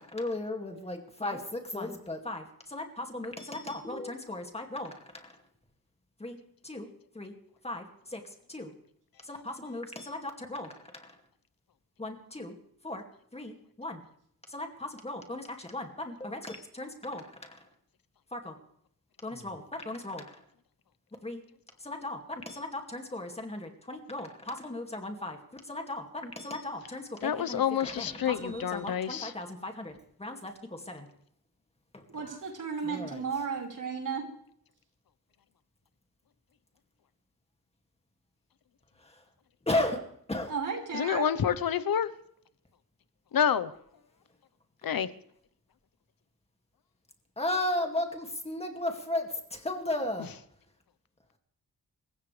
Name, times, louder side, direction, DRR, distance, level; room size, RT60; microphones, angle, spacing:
voice 1, 0.0-5.3 6.2-6.4 6.6-6.9 7.1-7.3 7.6-8.2 8.5-8.7 9.2-11.2 12.0-12.6 12.8-13.0 13.3-14.0 14.5-17.6 18.3-18.6 19.2-20.4 21.2-21.4 21.8-29.9 30.2-31.1 31.9-32.4 32.8-33.2 39.0-39.2 39.7-40.0 40.3-40.5 47.4-50.3, left 1 dB, 15° left, 2.3 m, -36 dB
voice 2, 27.2-29.3 40.9-42.1 43.3-43.7 44.8-45.1, left 8 dB, 80° left, 1.0 m, -28 dB
voice 3, 32.1-34.3 40.5-41.3, right 5 dB, 60° right, 5.2 m, -34 dB
27.0 x 15.5 x 3.4 m
wide cardioid pair, 175°, 35 cm